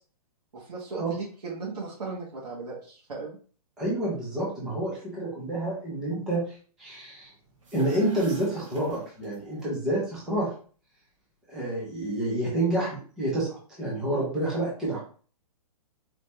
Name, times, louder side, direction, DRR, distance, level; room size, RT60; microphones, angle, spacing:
voice 1, 0.5-3.4, right 4 dB, 85° right, -5 dB, 1.6 m, -37 dB
voice 2, 3.8-6.4 6.8-7.3 7.7-10.5 11.5-15.0, right 1 dB, 5° right, -6 dB, 0.4 m, -28 dB
sound 1, 7.5-9.6, right 5 dB, 55° right, 1.3 m, -45 dB
4.2 x 2.7 x 3.3 m, 0.41 s
hypercardioid pair, 175°, 20 cm